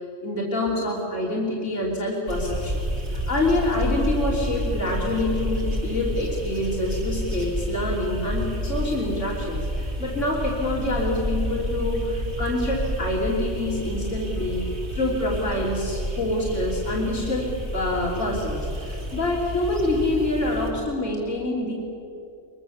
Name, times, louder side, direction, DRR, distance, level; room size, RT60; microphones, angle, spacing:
voice 1, 0.0-2.8 3.1-21.7, left 1 dB, 75° left, -3 dB, 3.5 m, -26 dB
sound 1, 2.3-20.7, equal, 60° right, 3.6 m, -30 dB
24.0 x 22.5 x 7.1 m, 2.7 s
omnidirectional pair, 1.3 m